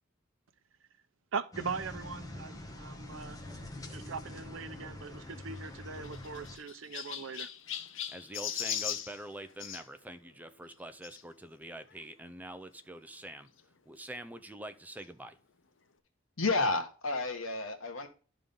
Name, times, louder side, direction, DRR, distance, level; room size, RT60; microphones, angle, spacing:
voice 1, 1.3-3.4 3.9-7.5, right 5 dB, 75° right, 0.6 m, -40 dB
sound 1, 1.5-6.6, left 1 dB, 15° left, 1.2 m, -45 dB
Knock, 2.3-3.0 3.5-4.3 4.8-5.4 5.9-6.7, equal, 30° right, 4.2 m, -55 dB
Chirp tweet, 5.5-9.8 11.0-11.2 11.9-12.0 12.2-12.3 13.6-13.7, left 10 dB, 70° left, 0.8 m, -39 dB
voice 2, 8.1-13.5 13.9-15.4, right 1 dB, 10° right, 0.5 m, -45 dB
voice 3, 16.4-18.1, left 3 dB, 85° left, 1.4 m, -31 dB
11.5 x 3.8 x 5.2 m
head